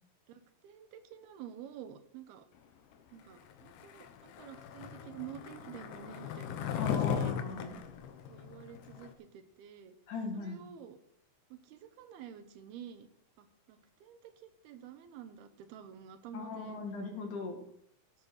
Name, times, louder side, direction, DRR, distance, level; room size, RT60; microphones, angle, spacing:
voice 1, 0.3-2.5 3.1-7.4 8.3-10.0 10.3-11.0 11.5-13.1 13.4-16.8, right 9 dB, 80° right, 9 dB, 3.1 m, -49 dB
Skateboard, 3.7-9.1, left 8 dB, 75° left, 2.9 m, -37 dB
voice 2, 6.8-7.8 10.1-10.6 16.3-17.6, left 4 dB, 55° left, 3 dB, 3.5 m, -38 dB
15.0 x 8.1 x 6.5 m, 0.70 s
omnidirectional pair, 4.4 m